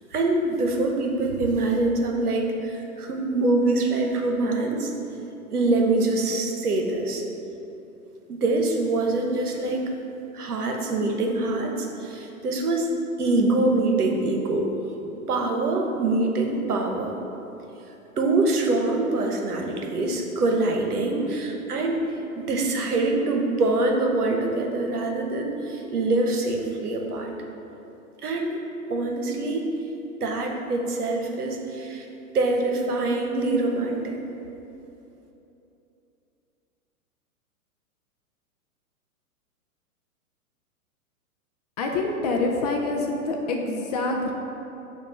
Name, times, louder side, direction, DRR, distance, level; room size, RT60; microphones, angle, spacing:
voice 1, 0.1-4.9 5.5-7.2 8.3-9.9 10.3-12.9 13.2-14.7 15.3-17.1 18.2-22.0 22.3-27.3 28.2-28.6 28.9-29.7 30.2-32.1 32.3-34.2, right 2 dB, 85° right, 2 dB, 1.0 m, -24 dB
voice 2, 41.8-44.3, left 3 dB, 30° left, 1 dB, 0.4 m, -26 dB
6.8 x 2.6 x 5.5 m, 3.0 s
hypercardioid pair, 120°, 44 cm